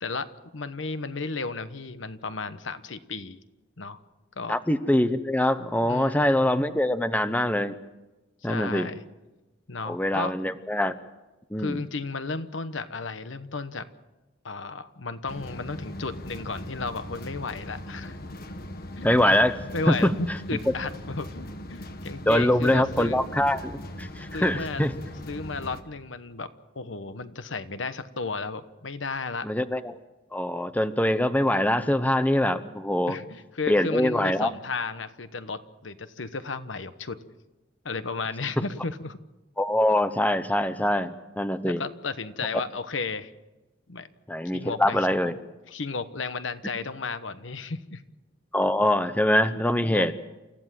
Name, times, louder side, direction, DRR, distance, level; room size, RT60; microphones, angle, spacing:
voice 1, 0.5-3.4 3.8-4.0 4.4-4.5 5.8-6.5 8.4-9.0 9.7-10.3 11.6-13.9 14.4-18.2 19.0-19.2 19.7-23.2 24.3-24.9 25.3-26.5 26.7-29.5 33.1-37.2 37.8-39.2 41.7-43.3 43.9-44.1 44.5-45.3 45.7-48.0 49.8-50.1, left 4 dB, 85° left, 12 dB, 1.1 m, -34 dB
voice 2, 4.5-7.7 8.4-8.9 9.9-10.9 11.5-11.8 19.0-19.6 19.9-20.1 22.3-24.9 29.4-30.0 30.3-33.2 33.7-34.5 39.6-41.8 44.3-45.3 48.5-50.2, left 1 dB, 10° left, 11 dB, 0.9 m, -23 dB
vent heavy ventilation metal rattle closeup, 15.3-25.8, left 1 dB, 55° left, 1.5 m, -39 dB
29.0 x 15.0 x 7.6 m, 1.1 s
head